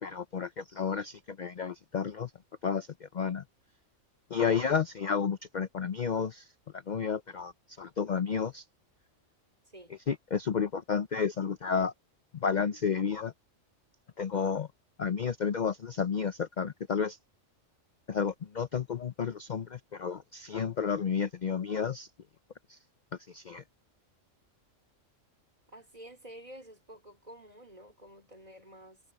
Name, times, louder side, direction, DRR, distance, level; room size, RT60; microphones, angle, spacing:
voice 1, 0.0-2.3 2.6-3.4 4.3-6.4 6.9-7.5 7.8-8.6 10.1-11.9 12.4-13.3 14.2-14.7 15.0-17.2 18.1-22.1 22.7-22.8 23.3-23.6, left 6 dB, 45° left, 0.7 m, -31 dB
voice 2, 25.7-29.0, right 1 dB, 30° right, 4.4 m, -50 dB
omnidirectional pair, 1.3 m